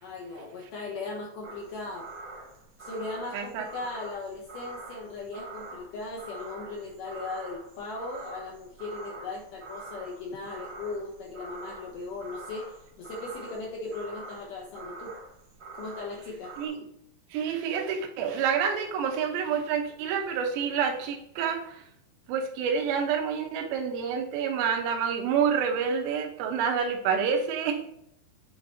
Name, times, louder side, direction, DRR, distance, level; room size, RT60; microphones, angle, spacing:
voice 1, 0.0-2.1 2.8-15.1 15.7-16.5, left 3 dB, 70° left, -2 dB, 2.1 m, -38 dB
sound 1, 1.4-16.7, right 3 dB, 55° right, 1.6 m, -45 dB
voice 2, 3.3-3.7 16.6-16.9 17.3-21.8 22.3-27.8, right 7 dB, 80° right, 4 dB, 3.1 m, -28 dB
9.3 x 3.9 x 4.2 m, 0.74 s
omnidirectional pair, 5.1 m